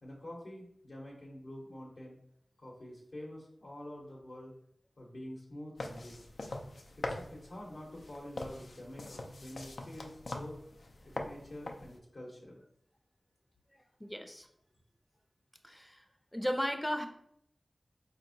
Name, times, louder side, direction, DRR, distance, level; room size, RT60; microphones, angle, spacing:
voice 1, 0.0-2.2 2.6-4.5 5.0-6.1 7.0-10.6 11.1-12.6, left 1 dB, 65° left, -3 dB, 0.8 m, -47 dB
sound 1, 5.8-12.0, left 2 dB, 80° left, 0.4 m, -43 dB
voice 2, 13.7-14.5 15.6-16.0 16.3-17.1, equal, 5° left, 6 dB, 0.5 m, -35 dB
4.2 x 2.8 x 2.6 m, 0.70 s
wide cardioid pair, 65°, 0 cm